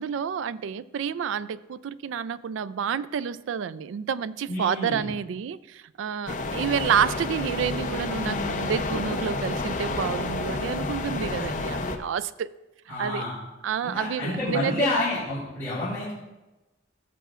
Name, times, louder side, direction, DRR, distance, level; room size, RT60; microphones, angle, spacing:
voice 1, 0.0-12.5 12.9-13.3 13.6-15.0, right 7 dB, 70° right, 0.3 m, -29 dB
voice 2, 4.5-5.0 12.9-13.3 13.8-16.1, left 2 dB, 15° left, 3.2 m, -29 dB
sound 1, 6.3-12.0, left 2 dB, 40° left, 0.6 m, -30 dB
17.0 x 7.0 x 2.4 m
head